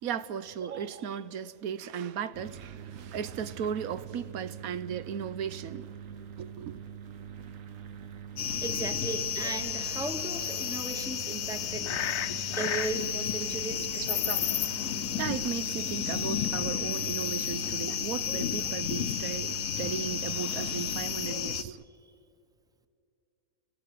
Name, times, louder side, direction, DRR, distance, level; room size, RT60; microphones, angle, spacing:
voice 1, 0.0-5.9 6.4-6.8 13.9-14.5 15.2-21.8, right 8 dB, 85° right, 1.2 m, -36 dB
sound 1, 2.3-21.3, right 7 dB, 70° right, 1.3 m, -44 dB
sound 2, 8.4-21.6, left 9 dB, 70° left, 1.2 m, -32 dB
voice 2, 8.6-11.9 12.5-14.3 14.9-15.0, right 3 dB, 5° right, 0.9 m, -36 dB
29.0 x 16.5 x 8.4 m
omnidirectional pair, 1.5 m